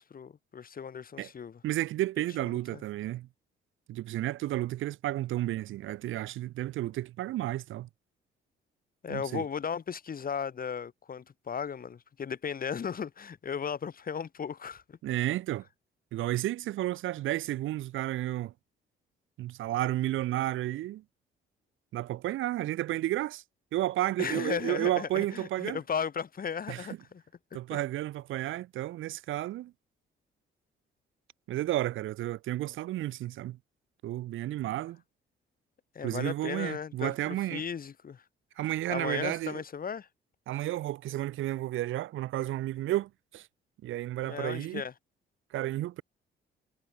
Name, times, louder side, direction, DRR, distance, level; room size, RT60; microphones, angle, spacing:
voice 1, 0.0-1.6 2.7-2.8 9.0-15.0 24.2-27.2 27.7-27.8 34.6-34.8 35.9-38.2 38.9-40.1 44.2-44.9, left 7 dB, 45° left, 3.9 m, -36 dB
voice 2, 1.6-3.3 3.9-7.9 9.1-9.4 15.0-15.6 16.1-18.5 19.4-21.0 21.9-23.4 23.7-25.8 26.7-26.9 27.5-29.7 31.5-33.6 34.0-35.0 36.0-37.6 38.6-39.6 40.5-43.5 43.8-44.8 45.5-46.0, right 15 dB, 85° right, 1.7 m, -32 dB
cardioid pair, 90°, 20 cm